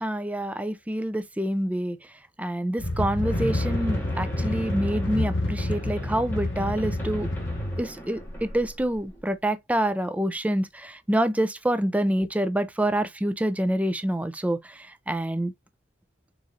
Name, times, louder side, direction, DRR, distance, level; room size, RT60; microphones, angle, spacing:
voice 1, 0.0-2.0 2.4-7.3 7.8-15.5, right 1 dB, 5° right, 0.4 m, -27 dB
sound 1, 2.8-7.8, left 1 dB, 70° left, 1.0 m, -28 dB
sound 2, 3.2-9.3, right 1 dB, 10° left, 1.5 m, -40 dB
6.4 x 3.1 x 2.6 m
head